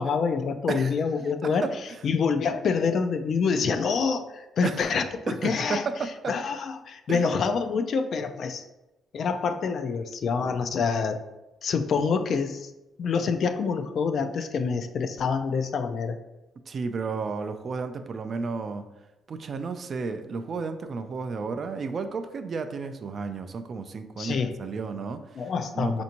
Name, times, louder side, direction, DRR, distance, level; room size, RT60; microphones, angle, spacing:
voice 1, 0.0-1.7 2.0-5.8 6.3-8.6 9.1-11.2 11.6-12.7 13.0-16.2 24.2-24.6 25.4-26.0, left 5 dB, 60° left, 8 dB, 0.3 m, -26 dB
voice 2, 0.7-1.0 1.4-2.0 4.6-4.8 5.3-6.3 7.1-7.3 16.7-18.8 19.3-25.5 25.7-26.0, right 4 dB, 50° right, 8 dB, 0.3 m, -32 dB
4.3 x 2.6 x 2.8 m, 0.97 s
cardioid pair, 90°, 0 cm